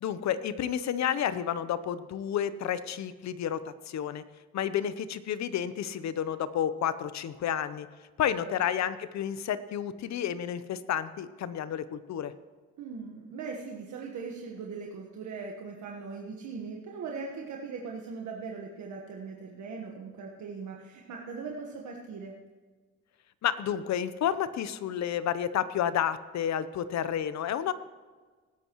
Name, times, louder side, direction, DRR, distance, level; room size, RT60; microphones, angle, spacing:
voice 1, 0.0-4.2 4.5-7.9 8.2-12.3 23.4-27.7, left 9 dB, 65° left, 14 dB, 0.8 m, -31 dB
voice 2, 12.8-22.3, right 5 dB, 70° right, 0 dB, 1.4 m, -40 dB
19.0 x 11.0 x 3.1 m, 1.4 s
cardioid pair, 90°, 30 cm